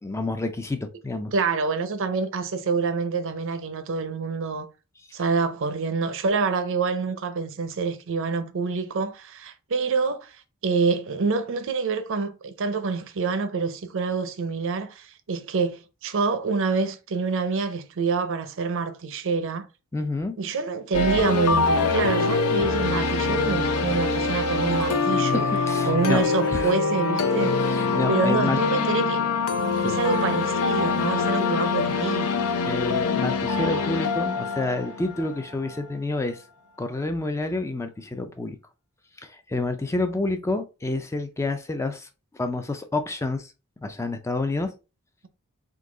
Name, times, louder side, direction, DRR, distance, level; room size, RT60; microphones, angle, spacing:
voice 1, 0.0-1.3 19.9-20.4 25.3-26.7 27.6-28.6 29.8-30.0 32.6-36.4 36.8-38.6 39.2-42.1 42.3-43.5 43.8-44.7, left 2 dB, 15° left, 0.3 m, -29 dB
voice 2, 1.3-4.7 5.1-10.3 10.6-19.7 20.4-25.4 25.9-27.5 28.1-29.2 29.8-32.3, right 4 dB, 60° right, 0.6 m, -26 dB
sound 1, 20.9-35.8, left 4 dB, 80° left, 0.6 m, -24 dB
3.8 x 2.7 x 3.7 m
head